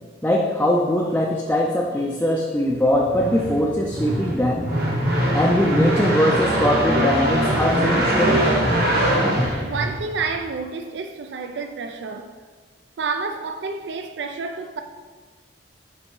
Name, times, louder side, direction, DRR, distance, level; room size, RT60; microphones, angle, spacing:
voice 1, 0.2-4.7 5.3-8.5, left 1 dB, 10° left, 0.4 m, -21 dB
sound 1, 2.8-10.4, right 1 dB, 55° right, 1.3 m, -22 dB
voice 2, 9.6-12.3 13.0-14.8, right 4 dB, 70° right, 0.4 m, -29 dB
6.1 x 5.0 x 3.8 m
head